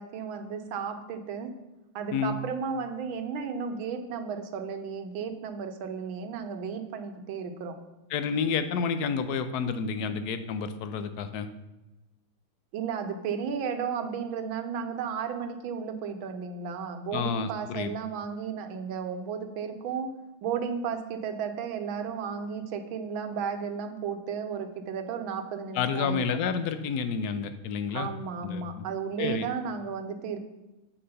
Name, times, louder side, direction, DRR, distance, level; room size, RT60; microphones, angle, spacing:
voice 1, 0.0-1.5 1.9-7.8 12.7-20.1 20.4-26.2 27.9-30.4, right 6 dB, 75° right, 6 dB, 1.6 m, -34 dB
voice 2, 8.1-11.5 17.1-17.9 25.7-28.1 28.4-28.6 29.2-29.5, left 6 dB, 65° left, 10 dB, 1.0 m, -29 dB
8.6 x 4.9 x 6.7 m, 1.0 s
omnidirectional pair, 2.3 m